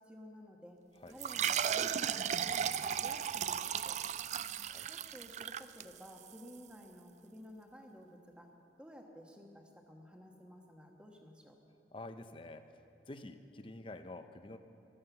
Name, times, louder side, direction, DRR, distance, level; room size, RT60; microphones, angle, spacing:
voice 1, 0.0-0.8 1.1-4.0 4.9-8.5 8.8-11.5, equal, 5° right, 1 dB, 1.4 m, -54 dB
sound 1, 1.2-6.3, right 8 dB, 40° right, 0.3 m, -35 dB
voice 2, 11.9-12.7 13.1-14.6, left 2 dB, 30° left, 9 dB, 0.7 m, -48 dB
15.5 x 13.0 x 7.1 m, 2.8 s
head